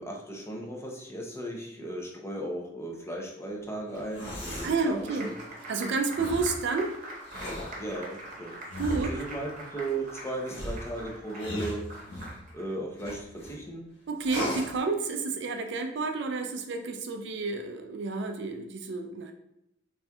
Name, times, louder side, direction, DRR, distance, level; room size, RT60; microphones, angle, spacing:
voice 1, 0.0-5.3 7.8-8.6 8.9-11.8 12.5-13.9, right 1 dB, 15° left, -1 dB, 0.6 m, -36 dB
sound 1, 3.9-4.8 6.1-6.6 7.2-7.8 8.7-9.3 10.4-12.4 13.0-13.5 14.2-14.8, left 1 dB, 80° left, 1.2 m, -36 dB
Applause, 3.9-12.7, right 1 dB, 45° right, 0.9 m, -44 dB
voice 2, 4.6-5.3 5.7-7.0 8.8-9.1 14.1-19.3, right 4 dB, 65° right, 5 dB, 0.4 m, -30 dB
4.2 x 3.4 x 2.3 m, 0.80 s
head